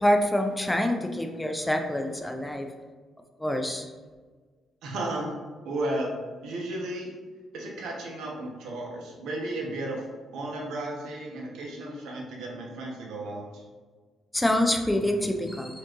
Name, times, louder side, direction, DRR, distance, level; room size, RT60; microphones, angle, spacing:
voice 1, 0.0-2.7 3.4-3.9 14.3-15.8, left 1 dB, 10° left, 4 dB, 0.5 m, -26 dB
voice 2, 4.8-5.3 5.6-6.1 6.4-7.1 7.5-10.0 10.3-13.6, right 1 dB, 80° right, -1 dB, 0.8 m, -34 dB
4.4 x 2.6 x 3.0 m, 1.4 s
cardioid pair, 90°, 0 cm